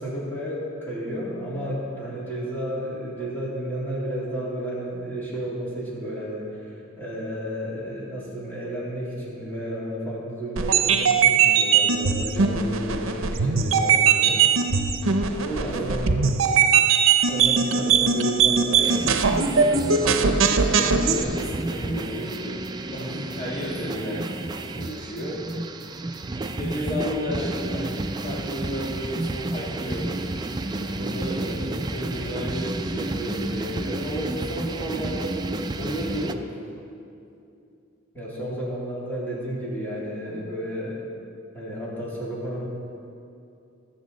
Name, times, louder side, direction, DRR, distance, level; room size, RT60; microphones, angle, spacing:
voice 1, 0.0-14.4 15.6-16.2 17.3-19.1 31.4-31.6 38.1-40.9 41.5-42.6, right 1 dB, 10° left, -7 dB, 2.7 m, -32 dB
sound 1, 10.6-21.2, right 6 dB, 80° right, 0.7 m, -20 dB
voice 2, 15.3-15.7 16.2-16.4 19.5-22.6 22.9-24.2 24.7-25.4 26.6-30.1 30.8-31.7 31.9-35.4 35.8-36.6, equal, 35° left, -7 dB, 1.7 m, -33 dB
sound 2, 18.8-36.3, right 2 dB, 20° right, 0.4 m, -31 dB
19.5 x 7.2 x 4.0 m, 2.6 s
head